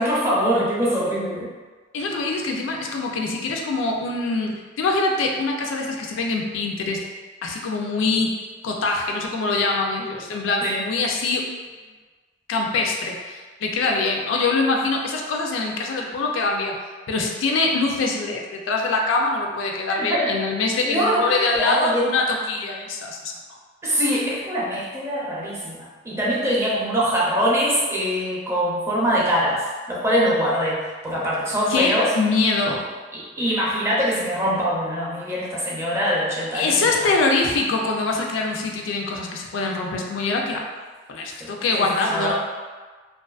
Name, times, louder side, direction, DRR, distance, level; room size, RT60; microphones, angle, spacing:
voice 1, 0.0-1.5 10.6-10.8 20.0-20.3 20.9-22.1 23.8-32.1 33.1-37.1 41.4-41.9 42.1-42.3, equal, 15° right, -6 dB, 0.5 m, -23 dB
voice 2, 1.9-7.0 7.4-8.3 8.6-11.4 12.5-16.8 17.1-23.3 31.7-32.8 36.5-40.7 41.1-42.3, left 3 dB, 85° left, 1 dB, 0.4 m, -24 dB
2.5 x 2.3 x 2.3 m, 1.4 s
head